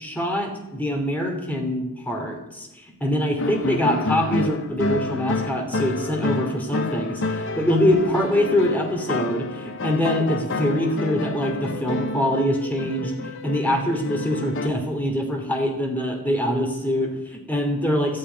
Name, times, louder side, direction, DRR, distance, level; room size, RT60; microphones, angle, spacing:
voice 1, 0.0-18.2, left 1 dB, 5° left, 2 dB, 3.0 m, -24 dB
sound 1, 3.4-14.7, left 2 dB, 55° left, 1.0 m, -29 dB
13.0 x 9.8 x 9.4 m, 0.94 s
head